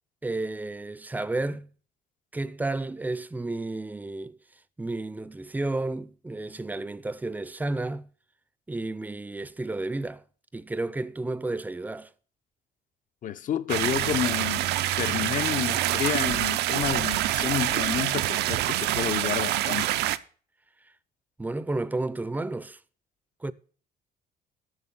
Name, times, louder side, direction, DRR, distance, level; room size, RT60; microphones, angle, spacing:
voice 1, 0.2-1.7 2.3-4.4 4.8-8.1 8.7-10.2 10.5-12.1 21.4-22.8 23.4-23.5, right 2 dB, 10° right, 0.5 m, -32 dB
voice 2, 13.2-14.7 15.0-19.9, left 10 dB, 50° left, 0.7 m, -30 dB
sound 1, 13.7-20.2, right 14 dB, 80° right, 0.5 m, -26 dB
8.1 x 6.4 x 7.4 m
cardioid pair, 110°, 17 cm